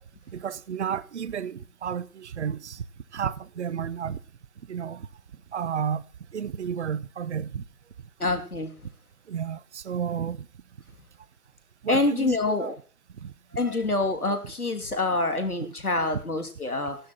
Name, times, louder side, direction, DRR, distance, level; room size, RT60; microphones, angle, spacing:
voice 1, 0.3-2.8 3.1-4.2 4.7-5.1 5.5-6.0 6.3-7.6 9.3-10.5 11.8-12.7 13.2-13.3 15.6-15.7, right 7 dB, 50° right, 0.9 m, -32 dB
voice 2, 8.2-8.7 11.9-12.7 13.5-17.0, left 2 dB, 80° left, 2.9 m, -26 dB
14.0 x 12.0 x 4.4 m
figure-of-eight pair, 130°, 43 cm